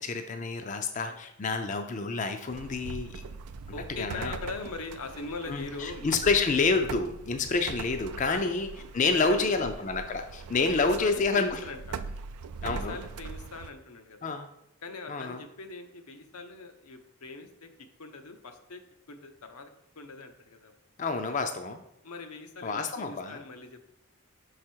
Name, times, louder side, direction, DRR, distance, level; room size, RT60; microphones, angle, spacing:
voice 1, 0.0-3.2 4.0-4.3 5.5-8.7 8.9-11.6 12.6-13.0 14.2-14.5 15.1-15.4 21.0-21.8 22.6-23.4, left 4 dB, 35° left, 6 dB, 0.4 m, -28 dB
sound 1, 2.5-13.7, right 5 dB, 90° right, 0.4 m, -41 dB
voice 2, 3.7-6.0 8.3-8.5 9.0-9.9 10.7-12.0 12.6-14.4 14.8-17.7 18.0-18.8 19.1-20.7 22.0-23.9, left 3 dB, 85° left, 6 dB, 0.8 m, -41 dB
6.1 x 4.8 x 4.5 m, 0.83 s
head